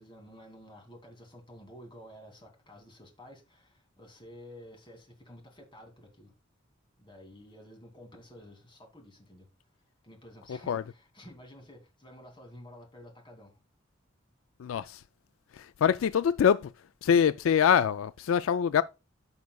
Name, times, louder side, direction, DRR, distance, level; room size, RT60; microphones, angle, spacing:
voice 1, 0.0-6.3 7.0-9.5 10.0-13.6, equal, 25° left, 2.4 m, -51 dB
voice 2, 14.6-15.0 15.8-16.7 17.0-18.8, left 8 dB, 80° left, 0.3 m, -24 dB
14.0 x 5.3 x 2.3 m
head